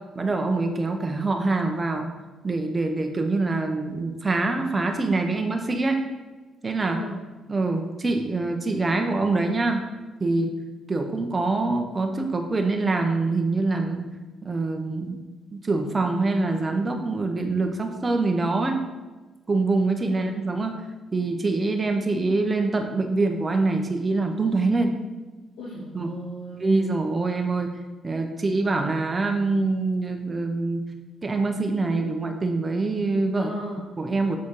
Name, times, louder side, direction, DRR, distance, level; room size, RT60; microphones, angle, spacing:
voice 1, 0.1-2.1 2.4-6.0 6.6-7.0 7.5-9.9 10.2-10.5 10.9-14.1 14.4-15.2 15.5-18.8 19.5-20.8 21.1-25.0 25.9-26.2 26.6-27.7 28.0-30.8 31.2-33.5 34.0-34.4, right 3 dB, 30° right, 4 dB, 1.0 m, -24 dB
voice 2, 6.9-7.2 20.1-20.3 25.6-26.8 33.4-33.8, equal, 85° left, -7 dB, 1.8 m, -36 dB
7.2 x 4.2 x 4.7 m, 1.2 s
cardioid pair, 90°, 0 cm